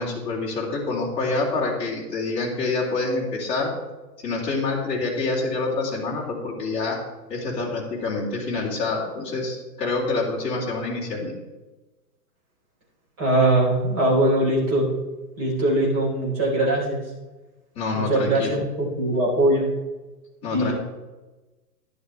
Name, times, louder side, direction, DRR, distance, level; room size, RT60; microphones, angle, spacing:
voice 1, 0.0-3.7 4.2-7.0 7.3-11.3 17.7-18.5 20.4-20.7, left 3 dB, 10° left, -7 dB, 2.6 m, -27 dB
voice 2, 13.2-14.9 15.4-17.0 17.9-19.7 20.5-20.7, right 1 dB, 25° right, -5 dB, 3.9 m, -21 dB
12.0 x 11.0 x 3.3 m, 1.2 s
hypercardioid pair, 170°, 48 cm